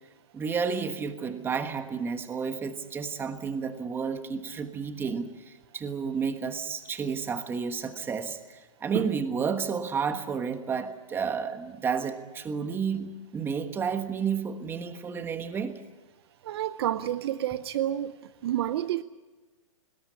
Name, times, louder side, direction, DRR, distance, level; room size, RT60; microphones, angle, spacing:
voice 1, 0.3-5.3 5.7-15.8, right 6 dB, 15° right, 9 dB, 1.3 m, -31 dB
voice 2, 16.4-18.1 18.4-19.0, right 12 dB, 50° right, 14 dB, 0.7 m, -29 dB
20.0 x 17.5 x 9.6 m, 1.2 s
hypercardioid pair, 145°, 17 cm